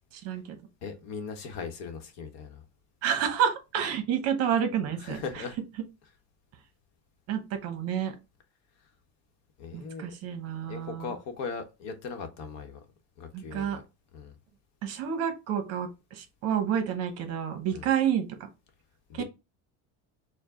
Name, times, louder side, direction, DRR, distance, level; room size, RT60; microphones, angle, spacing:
voice 1, 0.1-0.6 3.0-5.4 7.3-8.1 9.7-11.1 13.3-13.8 14.8-18.3 19.1-19.2, right 8 dB, 50° right, 0.9 m, -29 dB
voice 2, 0.8-2.6 5.0-5.6 9.6-10.1 10.7-12.8 13.2-13.8 14.1-14.3 17.7-17.9 19.1-19.2, left 5 dB, 55° left, 1.0 m, -39 dB
4.7 x 2.1 x 3.6 m
cardioid pair, 165°, 32 cm